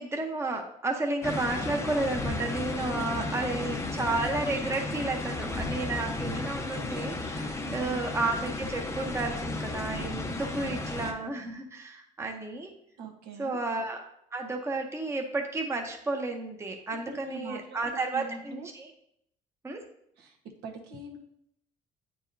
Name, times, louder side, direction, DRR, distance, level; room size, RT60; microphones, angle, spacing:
voice 1, 0.0-12.7 13.4-14.0 14.3-18.9 19.6-19.8, right 2 dB, 15° right, 3 dB, 0.8 m, -32 dB
sound 1, 1.2-11.1, left 2 dB, 15° left, 0.6 m, -34 dB
voice 2, 3.1-3.7 7.6-8.0 10.4-10.8 13.0-13.6 16.7-16.8 17.1-18.7 20.2-20.4 20.6-21.2, right 4 dB, 80° right, 1 dB, 1.2 m, -43 dB
8.7 x 4.8 x 2.7 m, 0.73 s
cardioid pair, 110°, 17 cm